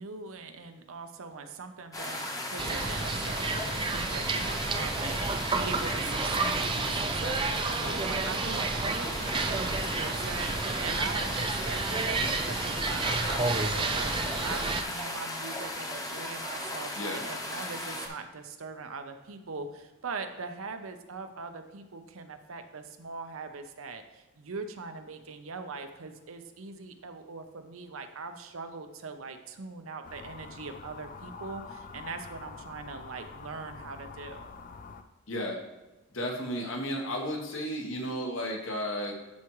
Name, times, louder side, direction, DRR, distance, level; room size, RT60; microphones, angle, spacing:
voice 1, 0.0-34.5, right 4 dB, 85° right, 7 dB, 0.7 m, -41 dB
sound 1, 1.9-18.1, left 1 dB, 15° left, 0.9 m, -36 dB
sound 2, 2.6-14.8, right 3 dB, 25° right, 0.4 m, -31 dB
voice 2, 17.0-17.3 35.3-35.6 36.1-39.2, equal, 70° left, 1 dB, 1.3 m, -33 dB
sound 3, 30.0-35.0, left 4 dB, 40° left, 0.4 m, -45 dB
11.5 x 4.8 x 3.1 m, 1.1 s
head